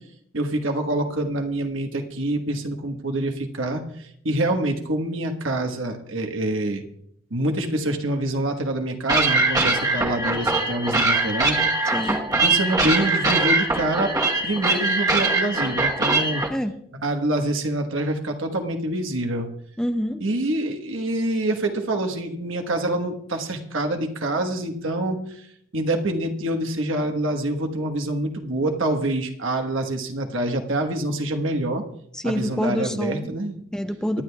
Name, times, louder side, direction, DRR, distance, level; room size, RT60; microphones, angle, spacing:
voice 1, 0.3-6.8 7.3-11.6 12.0-12.1 12.4-14.1 14.4-16.4 16.9-19.5 20.2-25.4 25.7-31.8 32.2-33.6, right 1 dB, 70° right, 4 dB, 1.3 m, -26 dB
sound 1, 9.1-16.5, right 3 dB, 20° right, 1.1 m, -22 dB
voice 2, 19.8-20.2 32.1-33.4 33.7-34.2, equal, 5° left, 7 dB, 0.6 m, -26 dB
24.5 x 10.5 x 2.3 m, 0.69 s
head